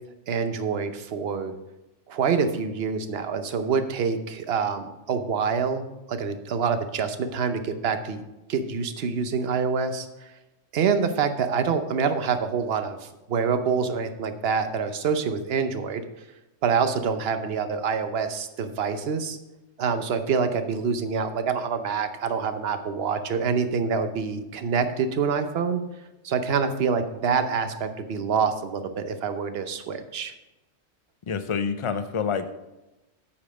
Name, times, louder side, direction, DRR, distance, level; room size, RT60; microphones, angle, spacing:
voice 1, 0.3-1.5 2.1-8.2 8.5-10.3 10.7-16.0 16.6-19.4 19.8-25.8 26.2-30.3, right 6 dB, 60° right, 9 dB, 0.9 m, -26 dB
voice 2, 31.3-32.5, left 6 dB, 45° left, 10 dB, 0.4 m, -27 dB
8.5 x 5.2 x 6.7 m, 1.0 s
omnidirectional pair, 1.3 m